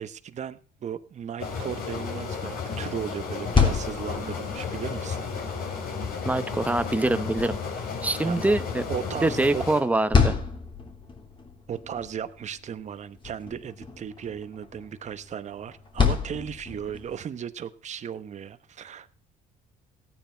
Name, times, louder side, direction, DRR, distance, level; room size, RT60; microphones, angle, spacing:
voice 1, 0.0-5.2 8.2-8.5 8.9-9.6 11.7-19.1, right 8 dB, 45° right, 12 dB, 1.1 m, -36 dB
sound 1, 1.4-9.8, left 5 dB, 65° left, 5.5 m, -33 dB
sound 2, 3.3-17.2, left 6 dB, 30° left, 3.1 m, -31 dB
voice 2, 6.2-7.6 8.0-8.8 9.2-10.3, right 2 dB, 10° right, 12 dB, 0.9 m, -24 dB
16.0 x 9.5 x 4.5 m, 0.42 s
cardioid pair, 110°, 17 cm